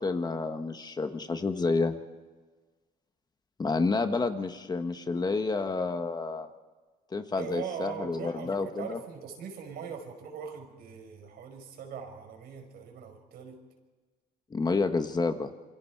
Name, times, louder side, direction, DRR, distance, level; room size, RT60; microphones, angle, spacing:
voice 1, 0.0-2.0 3.6-6.5 7.1-9.0 14.5-15.5, left 3 dB, 25° left, 7 dB, 1.4 m, -29 dB
voice 2, 7.3-13.6, right 7 dB, 70° right, 4 dB, 5.2 m, -41 dB
28.0 x 24.5 x 4.7 m, 1.3 s
cardioid pair, 110°, 17 cm